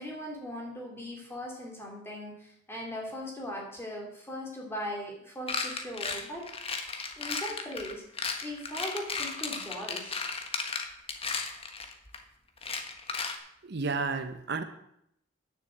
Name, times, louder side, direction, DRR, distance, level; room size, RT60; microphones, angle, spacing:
voice 1, 0.0-6.5 7.2-8.0 8.4-10.2, equal, 15° left, -1 dB, 2.9 m, -39 dB
sound 1, 5.5-12.2 12.6-13.4, left 4 dB, 30° left, 1.3 m, -35 dB
voice 2, 13.6-14.6, right 4 dB, 60° right, 10 dB, 0.9 m, -31 dB
10.5 x 6.9 x 8.0 m, 0.74 s
head